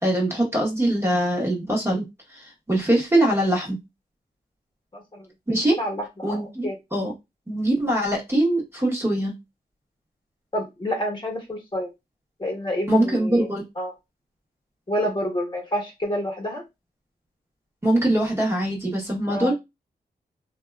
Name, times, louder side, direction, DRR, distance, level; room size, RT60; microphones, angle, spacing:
voice 1, 0.0-2.0 2.3-3.8 5.5-5.8 6.2-7.1 7.5-9.3 12.9-13.6 17.8-19.5, right 1 dB, 15° right, -2 dB, 1.0 m, -22 dB
voice 2, 4.9-5.2 5.8-6.7 10.5-11.9 12.4-13.5 13.8-13.9 14.9-16.6 19.3-19.5, equal, 25° left, -1 dB, 1.1 m, -28 dB
2.7 x 2.3 x 2.2 m, 0.21 s
wide cardioid pair, 90°, 17 cm